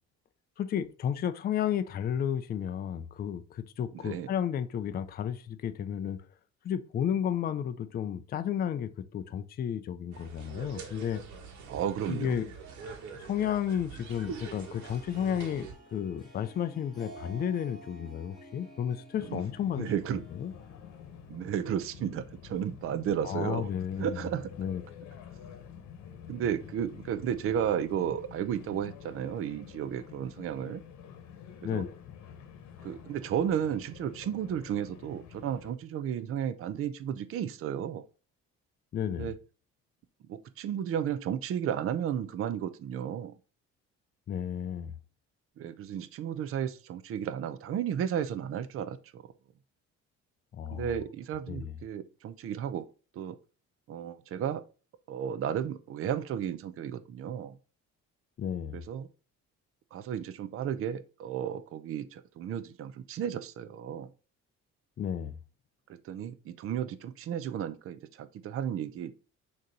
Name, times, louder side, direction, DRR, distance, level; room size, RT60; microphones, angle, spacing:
voice 1, 0.6-6.2 6.6-11.2 12.1-12.5 13.2-19.9 20.4-20.5 23.2-24.3 24.6-24.8 31.6-31.9 38.9-39.3 44.3-44.9 50.5-50.9 51.5-51.7 58.4-58.8 65.0-65.3, left 9 dB, 35° left, 0.4 m, -32 dB
voice 2, 3.9-4.3 11.7-12.4 19.2-19.4 19.8-20.2 21.3-23.7 24.0-24.5 26.3-30.8 31.6-31.8 32.8-38.0 39.1-39.4 40.3-43.3 45.6-49.2 50.7-52.9 53.1-53.4 53.9-54.6 55.1-57.6 58.7-59.1 59.9-64.1 65.9-69.1, right 9 dB, 50° right, 0.5 m, -33 dB
sound 1, 10.1-15.7, right 5 dB, 75° right, 1.5 m, -44 dB
Harp, 14.1-21.8, right 1 dB, ahead, 1.7 m, -52 dB
sound 2, 19.2-35.7, left 8 dB, 75° left, 1.1 m, -49 dB
6.4 x 2.9 x 5.2 m
cardioid pair, 170°, 29 cm